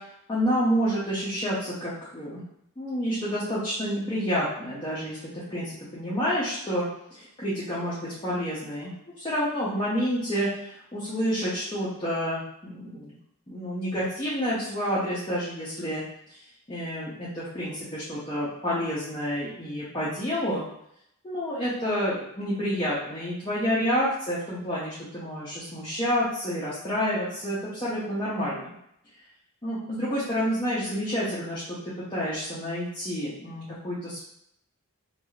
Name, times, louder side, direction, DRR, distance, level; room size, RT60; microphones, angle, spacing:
voice 1, 0.3-2.4 2.8-5.2 5.5-8.9 9.2-13.1 13.5-16.0 16.7-20.7 21.2-28.7 29.6-34.2, equal, 20° left, -9 dB, 0.6 m, -29 dB
2.6 x 2.3 x 3.0 m, 0.75 s
head